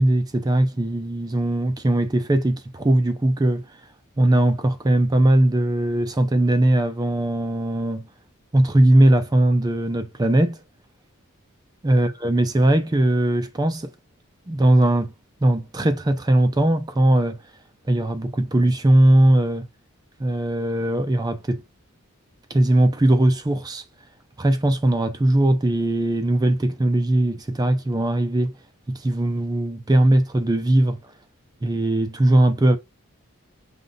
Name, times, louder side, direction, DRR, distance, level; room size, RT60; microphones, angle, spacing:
voice 1, 0.0-3.6 4.2-8.1 8.5-10.6 11.8-13.9 14.5-15.1 15.4-17.4 17.9-19.7 20.2-21.6 22.5-23.8 24.4-28.5 28.9-31.0 31.6-32.8, right 1 dB, 20° right, 0.4 m, -19 dB
5.1 x 2.0 x 3.9 m
head